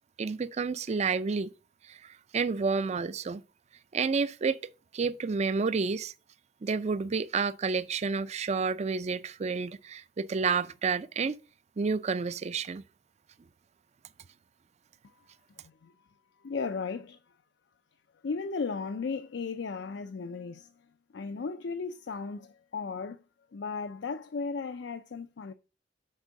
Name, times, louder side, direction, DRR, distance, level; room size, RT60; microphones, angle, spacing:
voice 1, 0.2-1.5 1.9-3.4 3.9-4.6 4.9-6.1 6.6-11.4 11.8-12.8, right 5 dB, 35° right, 0.4 m, -30 dB
voice 2, 16.4-17.2 18.2-20.7 21.1-23.2 23.5-25.5, left 4 dB, 70° left, 0.4 m, -35 dB
6.5 x 4.4 x 6.2 m
head